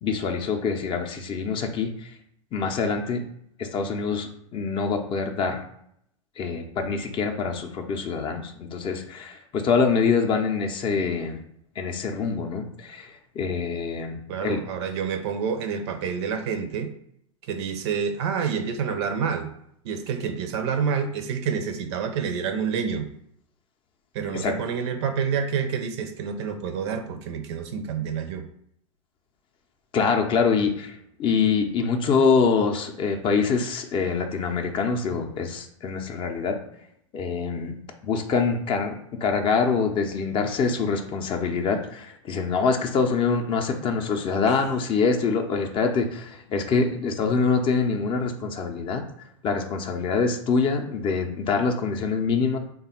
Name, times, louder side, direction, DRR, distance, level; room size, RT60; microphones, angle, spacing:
voice 1, 0.0-2.1 2.5-3.2 3.6-5.6 6.4-11.4 11.8-14.6 24.3-24.5 29.9-36.6 37.1-37.7 38.0-49.0 49.4-52.6, left 5 dB, 30° left, 3 dB, 0.5 m, -25 dB
voice 2, 14.3-16.9 17.5-19.5 19.8-23.1 24.1-28.5 44.5-44.6, right 6 dB, 55° right, 8 dB, 0.5 m, -28 dB
3.3 x 2.2 x 4.3 m, 0.72 s
figure-of-eight pair, 90°, 17 cm